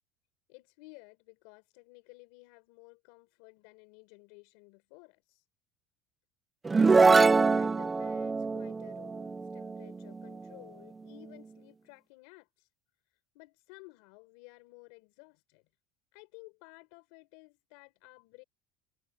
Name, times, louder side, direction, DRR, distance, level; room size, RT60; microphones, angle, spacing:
voice 1, 0.5-5.4 7.4-12.7 13.3-15.6 16.1-18.4, left 26 dB, 65° left, 4.5 m, -55 dB
sound 1, 6.6-10.3, right 4 dB, 10° right, 0.4 m, -24 dB
cardioid pair, 175°, 0 cm